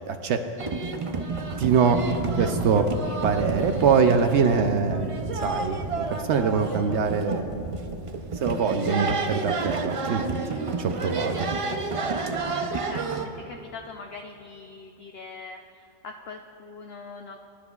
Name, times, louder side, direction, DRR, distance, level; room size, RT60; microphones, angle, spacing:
voice 1, 0.1-0.4 1.6-2.0 2.4-2.9 3.2-5.2 5.4-7.4 8.3-11.5, right 6 dB, 70° right, 6 dB, 0.9 m, -23 dB
sound 1, 0.6-13.3, right 3 dB, 45° right, 0.4 m, -30 dB
voice 2, 2.4-3.1 12.9-17.4, left 4 dB, 65° left, 4 dB, 0.7 m, -43 dB
21.5 x 10.0 x 2.3 m, 2.7 s
omnidirectional pair, 1.3 m